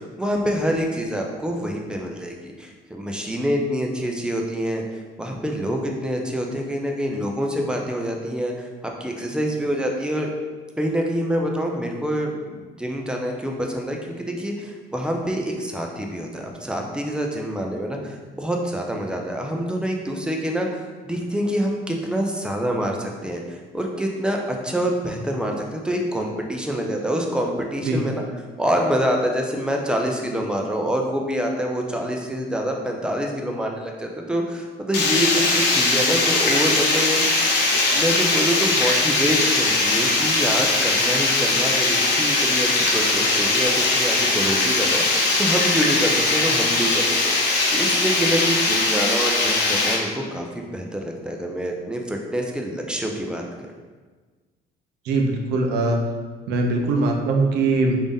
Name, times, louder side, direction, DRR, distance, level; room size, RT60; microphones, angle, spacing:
voice 1, 0.0-4.8 5.2-8.7 9.0-10.3 10.8-28.2 28.6-35.3 35.5-37.3 37.9-47.3 47.7-53.7, equal, 5° right, 1 dB, 0.4 m, -26 dB
Water, 34.9-49.9, left 3 dB, 90° left, 0.7 m, -20 dB
voice 2, 55.1-56.0 56.5-58.0, right 3 dB, 80° right, 2 dB, 0.5 m, -21 dB
3.5 x 2.6 x 3.5 m, 1.4 s
cardioid pair, 110°, 17 cm